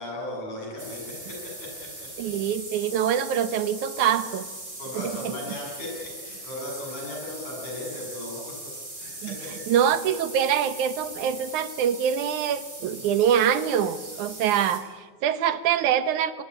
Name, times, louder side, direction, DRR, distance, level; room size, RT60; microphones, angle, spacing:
voice 1, 0.0-1.7 4.8-8.6 9.0-9.5, left 1 dB, 65° left, -2 dB, 9.5 m, -36 dB
sound 1, 0.8-14.8, right 1 dB, 15° right, 4.3 m, -40 dB
voice 2, 2.2-4.5 5.0-5.3 9.2-9.4 9.7-16.4, right 9 dB, 75° right, 12 dB, 2.5 m, -24 dB
23.5 x 20.0 x 10.0 m, 1.4 s
omnidirectional pair, 3.6 m